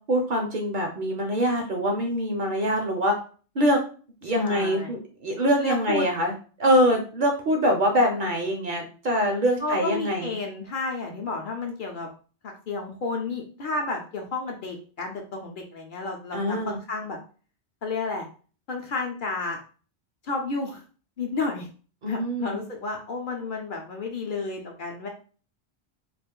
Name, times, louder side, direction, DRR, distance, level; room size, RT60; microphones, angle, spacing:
voice 1, 0.1-3.1 3.6-3.8 4.2-6.3 6.6-10.3 16.3-16.8 22.0-22.6, equal, 55° right, 3 dB, 0.6 m, -24 dB
voice 2, 4.3-4.9 5.6-6.1 9.6-12.1 12.4-17.2 17.8-18.3 18.7-19.6 20.2-20.8 21.2-21.7 22.0-25.1, left 3 dB, 60° left, 1 dB, 0.6 m, -31 dB
2.4 x 2.4 x 3.6 m, 0.39 s
omnidirectional pair, 1.2 m